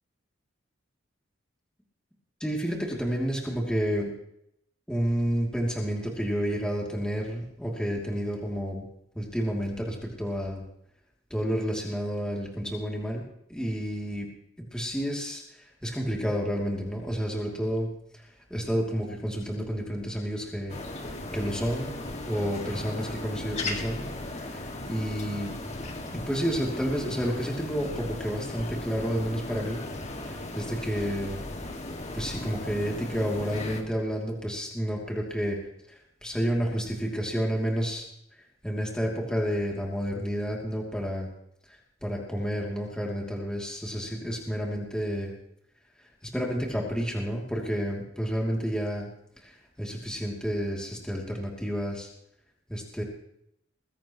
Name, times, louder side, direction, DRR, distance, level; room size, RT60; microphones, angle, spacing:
voice 1, 2.4-4.1 4.9-8.8 9.1-10.6 11.3-13.2 13.5-14.3 14.7-15.4 15.8-17.9 18.5-20.8 21.3-21.9 22.2-24.0 24.4-25.6 26.1-29.8 30.2-31.4 32.1-35.6 35.9-38.1 38.6-41.3 42.0-45.3 46.2-49.1 49.4-52.1 52.7-53.0, equal, 5° left, -2 dB, 2.8 m, -30 dB
sound 1, 20.7-33.8, left 2 dB, 35° left, 2.1 m, -37 dB
21.5 x 16.5 x 3.1 m, 0.75 s
head